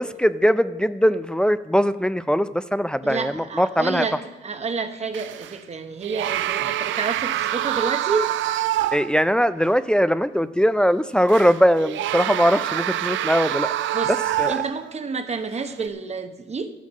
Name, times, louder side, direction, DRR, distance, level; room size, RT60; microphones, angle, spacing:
voice 1, 0.0-4.1 8.9-13.7 14.1-14.6, equal, 5° left, 13 dB, 0.4 m, -21 dB
voice 2, 3.0-4.2 4.4-8.3 13.9-14.1 14.5-16.7, right 4 dB, 35° right, 8 dB, 1.0 m, -29 dB
sound 1, 5.1-5.6 6.0-9.2 9.6-9.7 11.3-15.0 15.7-15.9, right 13 dB, 75° right, 0.5 m, -26 dB
12.5 x 6.4 x 7.2 m, 1.1 s
cardioid pair, 90°, 20 cm